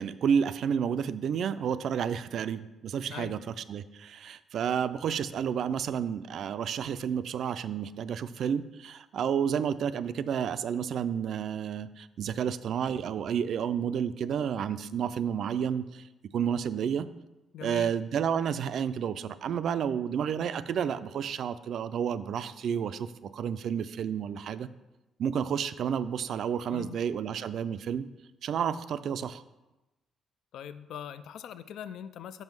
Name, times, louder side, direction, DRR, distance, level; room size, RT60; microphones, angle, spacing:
voice 1, 0.0-3.4 3.7-16.1 16.3-17.1 17.6-24.7 25.2-28.1 28.4-29.4, right 8 dB, 60° right, 13 dB, 0.3 m, -30 dB
voice 2, 17.5-17.9 26.7-27.0 30.5-32.4, left 9 dB, 75° left, 12 dB, 0.3 m, -41 dB
5.4 x 5.4 x 6.0 m, 1.0 s
cardioid pair, 125°, 0 cm